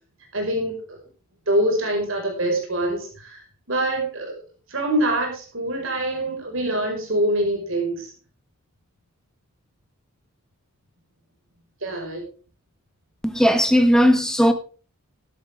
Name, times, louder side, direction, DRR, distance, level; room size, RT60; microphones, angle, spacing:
voice 1, 0.3-1.0 1.5-4.3 4.7-8.1 11.8-12.2, right 1 dB, 60° right, 5.4 m, -25 dB
voice 2, 13.2-14.5, equal, 5° left, 1.1 m, -17 dB
13.5 x 12.5 x 3.7 m
head